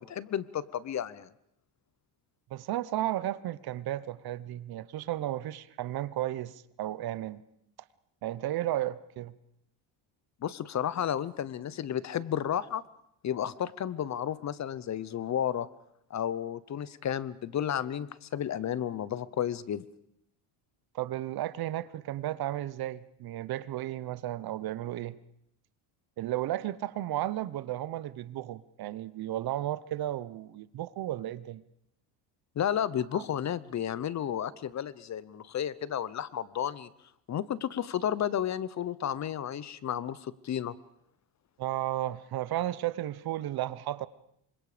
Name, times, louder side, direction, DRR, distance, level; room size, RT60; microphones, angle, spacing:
voice 1, 0.0-1.3 10.4-12.8 13.2-15.7 16.1-19.8 32.6-36.9 37.3-40.7, left 10 dB, 35° left, 18 dB, 0.8 m, -32 dB
voice 2, 2.5-7.4 8.2-9.3 20.9-25.2 26.2-31.6 33.1-33.2 41.6-44.1, right 14 dB, 50° right, 17 dB, 0.9 m, -34 dB
27.0 x 25.0 x 5.0 m, 0.76 s
cardioid pair, 135°, 46 cm